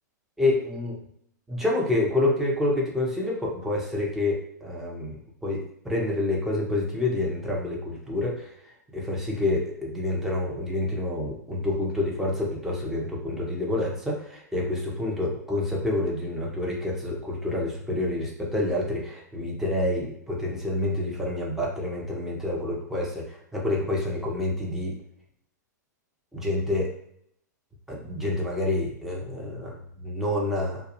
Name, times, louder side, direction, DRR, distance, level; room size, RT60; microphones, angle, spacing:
voice 1, 0.4-1.0 1.5-5.2 5.4-8.5 8.9-24.9 26.3-27.0 27.9-30.8, left 2 dB, 5° right, -4 dB, 0.7 m, -28 dB
2.3 x 2.2 x 2.9 m, 0.70 s
figure-of-eight pair, 105°, 10 cm